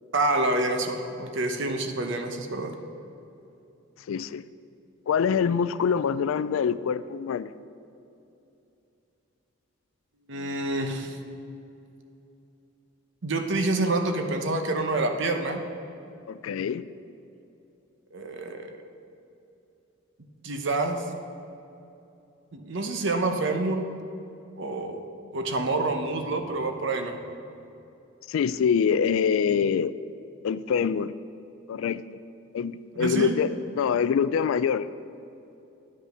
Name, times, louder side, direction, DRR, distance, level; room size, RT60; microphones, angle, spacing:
voice 1, 0.1-2.8 10.3-11.2 13.2-15.6 18.1-18.8 20.4-21.0 22.5-23.9 24.6-25.0 25.3-27.2 32.9-33.4, right 2 dB, 60° right, 5 dB, 0.9 m, -27 dB
voice 2, 4.1-4.4 5.1-7.5 16.3-16.9 28.3-29.9 30.4-31.1 31.7-32.0 32.5-33.5 33.7-34.9, left 7 dB, 75° left, 15 dB, 0.3 m, -25 dB
10.0 x 5.4 x 6.5 m, 2.8 s
head